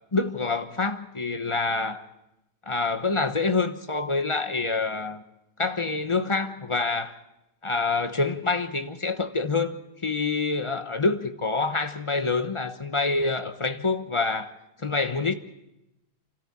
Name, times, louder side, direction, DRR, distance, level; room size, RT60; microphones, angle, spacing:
voice 1, 0.1-2.0 2.7-5.2 5.6-7.1 7.6-14.5 14.8-15.3, left 3 dB, 25° left, 0.8 m, -26 dB
28.5 x 13.5 x 7.3 m
omnidirectional pair, 1.7 m